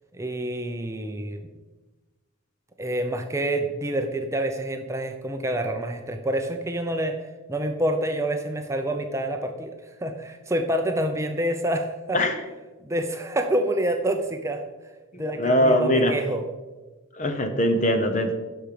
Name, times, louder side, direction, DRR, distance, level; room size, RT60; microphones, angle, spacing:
voice 1, 0.1-1.4 2.8-7.2 7.5-9.8 10.0-12.2 12.8-14.6 15.2-16.4, right 1 dB, 15° right, 5 dB, 0.6 m, -27 dB
voice 2, 15.1-16.1 17.1-18.3, equal, 35° left, 7 dB, 0.9 m, -22 dB
10.5 x 6.4 x 5.2 m, 1.2 s
head